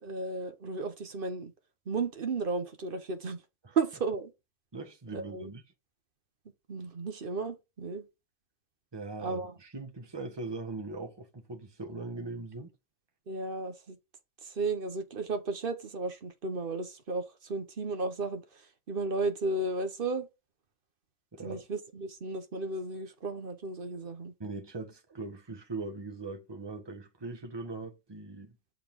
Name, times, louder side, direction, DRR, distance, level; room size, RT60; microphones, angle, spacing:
voice 1, 0.0-1.5 1.9-3.4 3.7-4.3 5.1-5.5 6.7-8.0 9.2-9.5 13.3-14.0 14.4-20.3 21.4-24.3, right 3 dB, 40° right, 1.1 m, -34 dB
voice 2, 4.7-5.6 8.9-12.7 21.3-21.6 24.4-28.6, right 3 dB, 20° right, 1.1 m, -40 dB
6.8 x 3.9 x 5.2 m
omnidirectional pair, 1.6 m